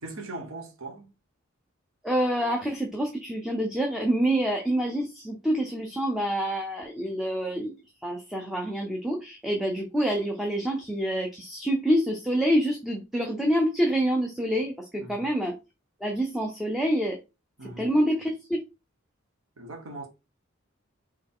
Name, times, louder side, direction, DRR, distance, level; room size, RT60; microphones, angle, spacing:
voice 1, 0.0-1.1 15.0-15.2 17.6-17.9 19.6-20.1, right 2 dB, 85° right, 1.2 m, -39 dB
voice 2, 2.0-7.7 8.0-15.6 16.0-17.2 17.8-18.6, equal, ahead, 0.6 m, -27 dB
4.1 x 3.1 x 3.6 m
head